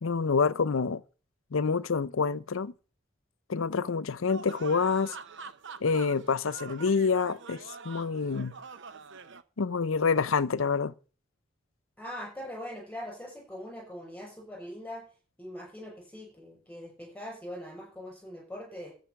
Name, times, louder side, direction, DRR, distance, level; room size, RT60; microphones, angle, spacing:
voice 1, 0.0-1.0 1.5-2.7 3.5-5.2 5.8-8.5 9.6-10.9, left 5 dB, 70° left, 0.6 m, -27 dB
sound 1, 4.3-9.4, right 5 dB, 60° right, 0.8 m, -45 dB
voice 2, 12.0-15.0 15.4-18.9, left 1 dB, 5° left, 6.7 m, -42 dB
13.5 x 5.4 x 6.9 m
head